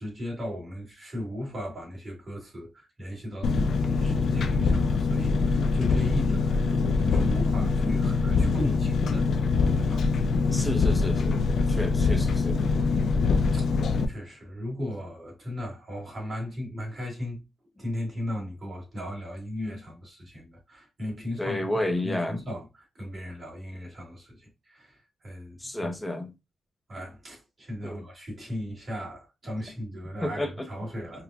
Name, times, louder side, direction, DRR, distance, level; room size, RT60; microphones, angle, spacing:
voice 1, 0.0-9.3 9.7-10.0 13.5-13.7 14.1-17.4 17.7-25.0 25.2-25.9 26.9-31.2, left 1 dB, 35° right, 1.8 m, -37 dB
Engine, 3.4-14.0, left 4 dB, 70° left, 0.4 m, -24 dB
voice 2, 10.5-11.4 11.7-12.6 14.8-14.9 21.4-22.4 25.6-26.3 27.8-28.0 30.2-30.7, left 1 dB, 10° left, 0.6 m, -31 dB
5.0 x 2.2 x 2.4 m
wide cardioid pair, 135°, 0 cm